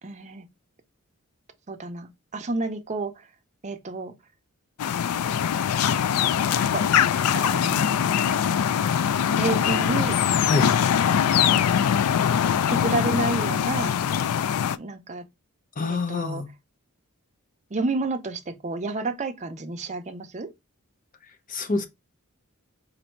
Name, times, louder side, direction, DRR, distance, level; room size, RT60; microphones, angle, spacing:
voice 1, 0.0-0.5 1.7-3.1 3.6-4.1 6.7-6.8 7.3-7.9 9.4-10.2 12.7-14.0 14.8-15.2 15.9-16.4 17.7-20.5, right 3 dB, 30° right, 0.6 m, -30 dB
sound 1, 4.8-14.8, left 8 dB, 85° left, 0.4 m, -22 dB
voice 2, 15.8-16.5 21.5-21.9, left 3 dB, 40° left, 0.7 m, -26 dB
4.1 x 2.6 x 4.4 m
head